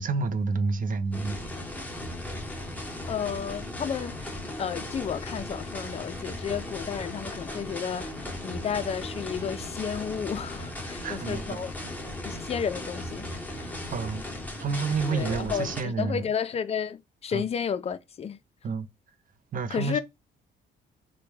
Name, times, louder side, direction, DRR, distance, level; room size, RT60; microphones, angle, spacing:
voice 1, 0.0-1.4 11.0-11.6 13.9-14.2 14.6-16.2 17.3-17.4 18.6-18.9 19.5-20.0, right 4 dB, 45° right, 0.5 m, -29 dB
sound 1, 1.1-15.8, left 1 dB, 10° left, 0.8 m, -37 dB
voice 2, 3.1-4.3 4.6-11.7 12.2-13.3 13.5-13.8 15.1-18.4 19.7-20.0, left 7 dB, 30° left, 0.4 m, -32 dB
3.3 x 2.2 x 3.1 m
cardioid pair, 90°, 20 cm